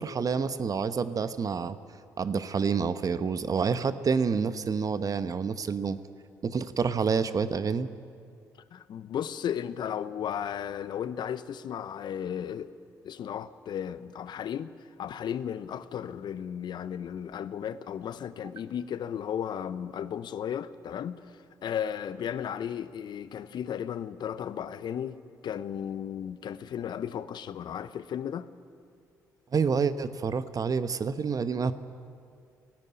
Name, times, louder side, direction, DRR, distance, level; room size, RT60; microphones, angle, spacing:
voice 1, 0.0-1.8 2.2-6.0 6.4-7.9 29.5-31.7, right 5 dB, 45° right, 1.0 m, -28 dB
voice 2, 8.7-12.7 13.0-14.7 15.0-25.2 25.4-28.5, left 9 dB, 55° left, 0.8 m, -35 dB
16.5 x 16.5 x 9.6 m
hypercardioid pair, 45°, 9 cm